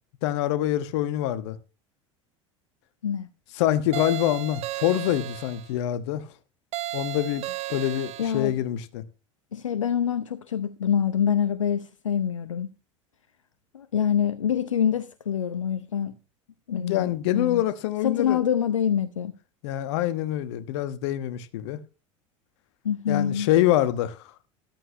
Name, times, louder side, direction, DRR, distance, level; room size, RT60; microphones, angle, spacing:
voice 1, 0.2-1.6 3.5-6.3 6.9-9.0 16.7-18.4 19.6-21.8 23.1-24.3, left 13 dB, 60° left, 1.1 m, -25 dB
sound 1, 3.9-5.7 6.7-8.5, right 15 dB, 40° right, 0.8 m, -34 dB
voice 2, 8.2-8.5 9.5-12.7 13.7-16.1 16.7-17.6 18.0-19.3 22.8-23.5, left 8 dB, 80° left, 0.7 m, -26 dB
13.5 x 12.0 x 2.7 m
figure-of-eight pair, 75°, 16 cm